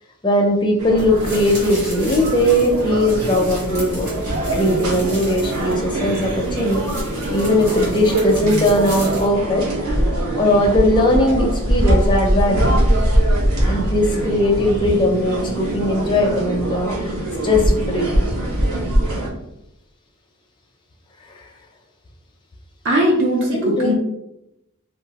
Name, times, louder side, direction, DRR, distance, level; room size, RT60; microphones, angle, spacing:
voice 1, 0.2-4.1 4.5-6.8 7.3-9.7 10.4-12.7 13.7-17.1 17.4-18.1 21.3-21.5 23.6-23.9, left 1 dB, 20° left, 0 dB, 0.4 m, -19 dB
sound 1, 0.8-19.3, right 1 dB, 80° right, 0.9 m, -22 dB
sound 2, 1.0-9.3, equal, 40° right, 1.4 m, -34 dB
voice 2, 22.8-23.9, equal, 55° right, -1 dB, 0.5 m, -19 dB
2.9 x 2.2 x 2.8 m, 0.85 s
head